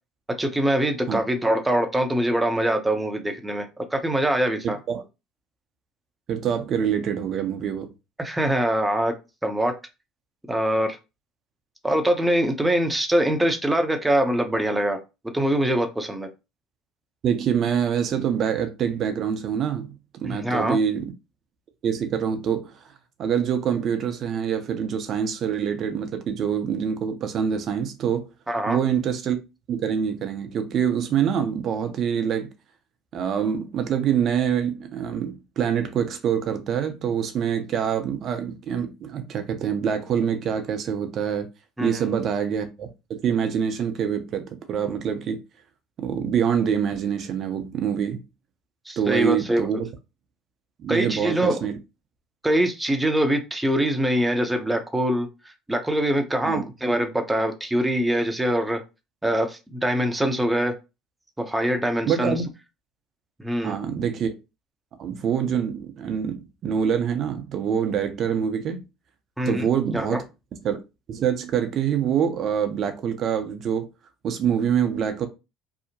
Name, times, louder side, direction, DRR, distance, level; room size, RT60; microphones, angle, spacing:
voice 1, 0.4-4.8 8.2-9.1 9.4-9.7 10.5-11.0 11.8-15.0 15.3-16.3 20.2-20.8 28.5-28.8 41.8-42.0 48.9-49.7 50.9-51.7 52.4-55.3 55.7-58.8 59.2-60.7 61.4-62.4 63.4-63.8 69.4-69.7 69.9-70.2, right 1 dB, 10° right, 0.7 m, -23 dB
voice 2, 6.3-7.9 17.2-19.9 20.2-21.1 21.8-22.7 23.2-28.3 28.7-29.4 29.7-32.5 33.1-41.5 41.8-45.4 46.0-48.2 49.0-49.9 50.8-51.7 56.4-56.6 62.1-62.5 63.6-64.3 65.0-68.8 69.4-70.2 70.6-70.8 71.1-73.9 74.2-75.3, right 8 dB, 50° right, 0.6 m, -25 dB
2.8 x 2.0 x 2.8 m
hypercardioid pair, 65°, 0 cm